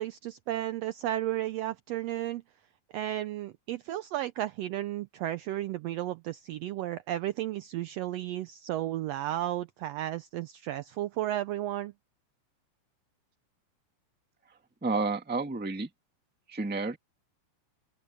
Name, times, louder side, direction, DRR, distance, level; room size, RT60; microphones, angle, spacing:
voice 1, 0.0-2.4 2.9-11.9, right 13 dB, 85° right, 1.4 m, -33 dB
voice 2, 14.8-15.9 16.5-17.0, right 3 dB, 5° right, 0.9 m, -30 dB
open air
omnidirectional pair, 3.5 m